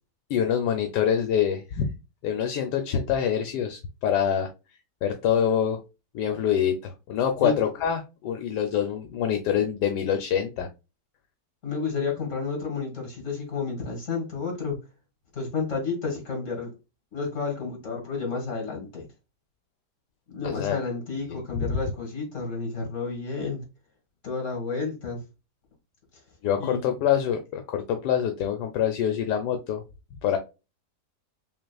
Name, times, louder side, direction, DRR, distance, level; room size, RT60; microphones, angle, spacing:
voice 1, 0.3-1.9 2.2-4.5 5.0-5.8 6.1-10.7 20.4-20.8 21.3-21.8 26.4-29.8 30.2-30.4, left 8 dB, 80° left, 1.2 m, -25 dB
voice 2, 11.6-14.8 15.3-16.7 17.1-19.1 20.3-23.6 24.2-25.2 26.6-26.9, left 4 dB, 45° left, 2.2 m, -31 dB
6.0 x 2.4 x 2.3 m
omnidirectional pair, 1.8 m